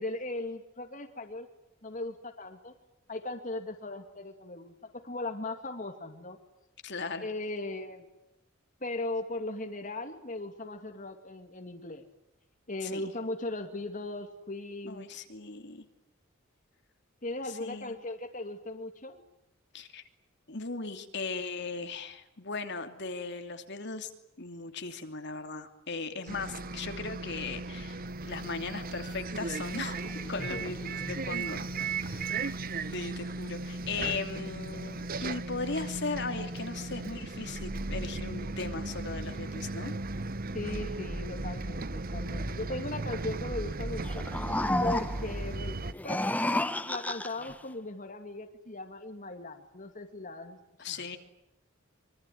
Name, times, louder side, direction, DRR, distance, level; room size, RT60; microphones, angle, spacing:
voice 1, 0.0-1.5 1.8-2.7 3.1-6.4 7.2-8.1 8.8-12.0 12.7-15.1 17.2-19.2 30.5-30.6 40.5-44.2 44.8-46.2 46.8-50.6 50.9-51.0, left 2 dB, 40° left, 4 dB, 2.5 m, -38 dB
voice 2, 6.8-7.3 12.8-13.0 14.8-15.8 17.6-17.9 19.7-20.0 20.5-24.1 24.4-30.0 30.3-31.7 32.0-32.5 32.9-39.9 50.8-51.2, left 4 dB, 60° left, 6 dB, 2.8 m, -38 dB
Bus, 26.3-45.9, right 3 dB, 45° right, 1.0 m, -36 dB
sound 1, 28.1-38.1, left 1 dB, 25° left, 2.3 m, -51 dB
sound 2, 44.0-45.4 45.9-47.5, left 1 dB, 10° left, 1.1 m, -30 dB
25.5 x 24.5 x 9.4 m, 0.85 s
head